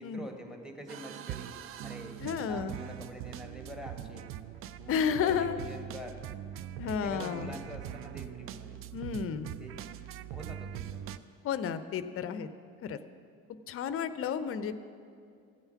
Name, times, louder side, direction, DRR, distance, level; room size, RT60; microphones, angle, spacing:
voice 1, 0.0-1.6 1.8-4.3 4.8-6.3 6.8-8.8 9.6-9.8 10.3-10.9, equal, ahead, 4 dB, 1.5 m, -45 dB
sound 1, 0.9-11.2, right 11 dB, 35° right, 0.4 m, -42 dB
voice 2, 2.2-2.7 4.9-5.6 6.8-7.5 8.9-9.5 11.4-12.5 12.8-13.0 13.7-14.8, left 7 dB, 35° left, 13 dB, 0.6 m, -32 dB
14.5 x 8.8 x 5.8 m, 2.4 s
figure-of-eight pair, 55°, 41 cm